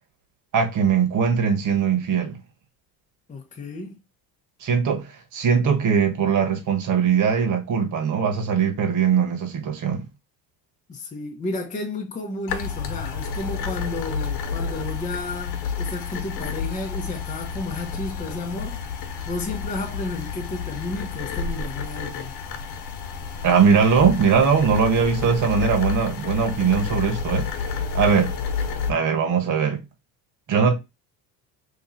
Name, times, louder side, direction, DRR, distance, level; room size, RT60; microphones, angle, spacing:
voice 1, 0.5-2.4 4.6-10.1 23.4-28.3 28.9-29.8 30.5-30.7, right 6 dB, 45° right, 1.3 m, -21 dB
voice 2, 3.3-4.0 10.9-18.8 19.3-22.3, left 2 dB, 20° left, 0.7 m, -32 dB
sound 1, 12.5-28.9, left 6 dB, 65° left, 1.0 m, -30 dB
3.0 x 2.7 x 3.7 m
supercardioid pair, 105°, 40 cm